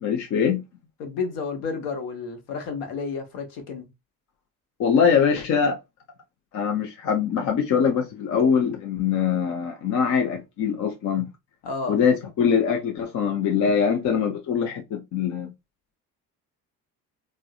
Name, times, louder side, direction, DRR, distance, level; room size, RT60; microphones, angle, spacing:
voice 1, 0.0-0.6 4.8-5.8 6.5-11.3 11.9-15.5, left 7 dB, 40° left, 0.6 m, -23 dB
voice 2, 1.0-3.9 11.6-12.0, left 4 dB, 60° left, 1.0 m, -31 dB
3.5 x 2.0 x 2.3 m
figure-of-eight pair, 50°, 47 cm